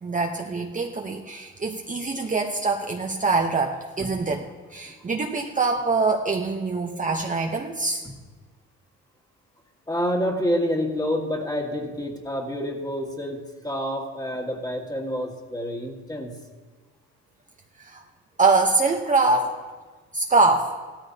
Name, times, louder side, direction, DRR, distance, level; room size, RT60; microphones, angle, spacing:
voice 1, 0.0-8.0 17.8-18.0 18.4-19.6 20.1-20.8, right 3 dB, 25° right, 2 dB, 0.8 m, -24 dB
voice 2, 9.9-16.3, equal, 10° left, 2 dB, 1.8 m, -28 dB
16.0 x 13.0 x 2.8 m, 1.4 s
cardioid pair, 90°, 30 cm